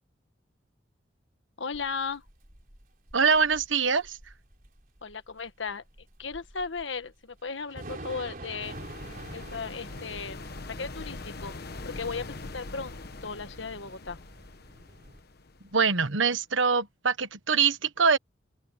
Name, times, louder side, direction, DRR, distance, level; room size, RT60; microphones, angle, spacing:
voice 1, 1.6-2.2 5.0-5.8 6.2-8.7 9.3-10.4 10.8-11.6 11.8-12.9 13.2-14.2, left 5 dB, 75° left, 1.5 m, -36 dB
Thunder / Rain, 1.7-15.2, right 2 dB, 50° right, 3.9 m, -47 dB
voice 2, 3.1-4.2 15.7-18.2, right 5 dB, 90° right, 1.3 m, -24 dB
sound 1, 8.6-16.2, left 2 dB, 55° left, 1.2 m, -42 dB
open air
head